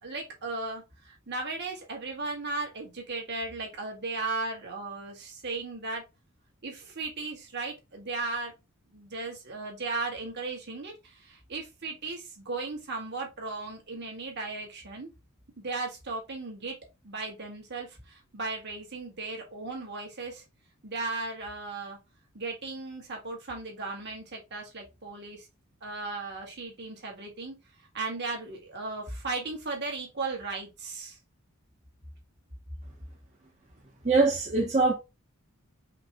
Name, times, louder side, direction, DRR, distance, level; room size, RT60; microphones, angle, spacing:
voice 1, 0.0-6.0 6.6-8.5 8.9-15.1 15.6-16.8 17.0-20.4 20.8-22.0 22.3-25.5 25.8-27.6 27.9-31.2, right 3 dB, 55° right, 2.0 m, -36 dB
voice 2, 34.0-34.9, right 3 dB, 35° right, 0.9 m, -23 dB
5.1 x 3.4 x 3.0 m
head